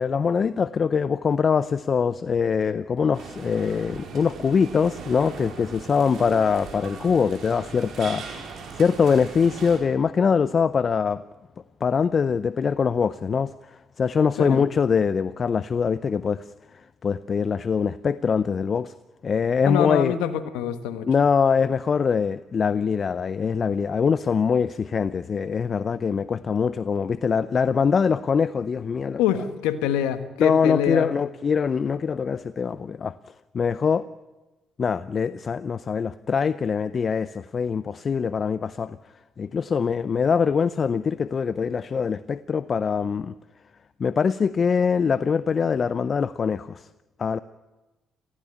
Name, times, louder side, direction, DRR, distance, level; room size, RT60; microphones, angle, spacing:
voice 1, 0.0-11.2 11.8-16.5 17.0-18.9 19.2-20.1 21.1-29.2 30.4-33.1 33.5-34.1 34.8-39.0 39.4-43.3 44.0-46.9 47.2-47.4, left 6 dB, 45° left, 16 dB, 0.6 m, -23 dB
sound 1, 3.1-9.8, right 5 dB, 65° right, 4.6 m, -39 dB
voice 2, 19.6-21.1 29.2-31.1, left 10 dB, 80° left, 10 dB, 1.4 m, -25 dB
17.5 x 15.5 x 10.0 m, 1.1 s
hypercardioid pair, 55°, 0 cm